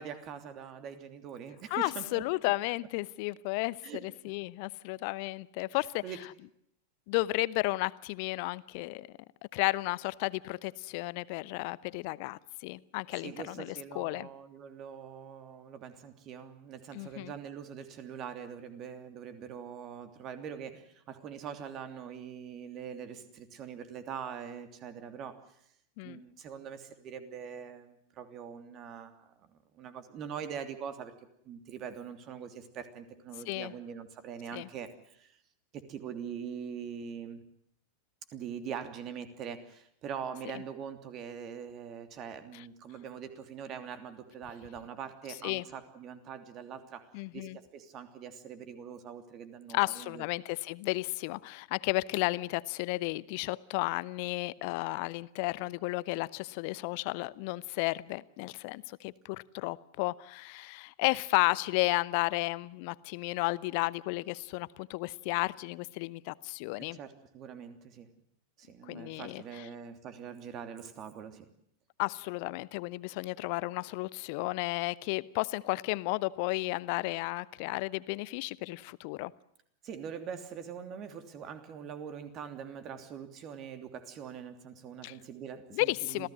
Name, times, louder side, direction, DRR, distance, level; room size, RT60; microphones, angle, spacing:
voice 1, 0.0-2.2 3.8-4.0 6.0-6.2 13.2-25.4 26.0-31.1 31.4-35.3 35.7-37.4 38.3-50.2 66.8-68.1 68.6-71.5 79.8-86.3, right 7 dB, 35° right, 9 dB, 3.0 m, -43 dB
voice 2, 1.7-3.8 4.0-6.0 7.1-9.1 9.5-14.3 16.9-17.3 26.0-26.2 33.5-33.7 34.5-34.7 42.5-42.6 45.4-45.6 47.1-47.6 49.7-67.0 68.9-69.7 72.0-79.3 85.0-85.2 85.7-86.3, left 22 dB, 45° left, 20 dB, 0.8 m, -33 dB
27.0 x 17.0 x 7.8 m, 0.72 s
figure-of-eight pair, 90°, 0 cm